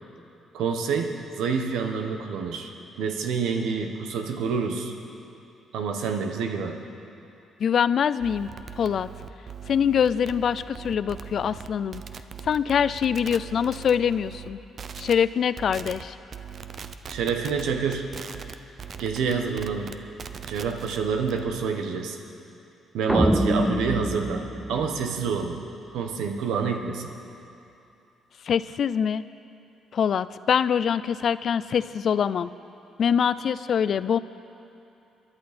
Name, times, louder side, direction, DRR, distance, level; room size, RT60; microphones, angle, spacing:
voice 1, 0.5-2.7 3.0-4.9 5.7-6.8 17.1-18.2 19.0-19.9 20.5-22.2 22.9-25.6 25.9-27.1, right 5 dB, 80° right, 4 dB, 1.3 m, -28 dB
voice 2, 7.6-8.5 8.8-9.1 9.7-12.0 12.4-14.6 15.0-16.2 28.4-29.2 29.9-32.5 33.0-34.2, left 8 dB, 60° left, 15 dB, 0.4 m, -24 dB
sound 1, 8.2-14.5 14.8-15.1 15.6-16.0 16.3-21.5, right 7 dB, 50° right, 0.7 m, -40 dB
sound 2, 23.1-25.6, equal, 5° right, 0.9 m, -25 dB
22.5 x 11.5 x 4.3 m, 2.8 s
supercardioid pair, 75°, 0 cm